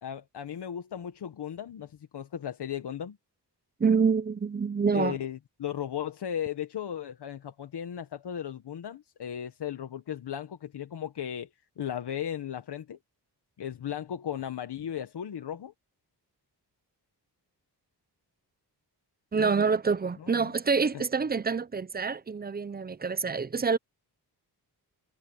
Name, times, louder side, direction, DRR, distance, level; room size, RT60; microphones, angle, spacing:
voice 1, 0.0-3.2 4.9-11.5 11.8-13.0 13.6-15.7 19.4-19.5 20.2-20.5 20.9-21.0, left 9 dB, 70° left, 1.2 m, -36 dB
voice 2, 3.8-5.2 19.3-23.8, right 5 dB, 25° right, 0.5 m, -26 dB
wide cardioid pair, 150°, 41 cm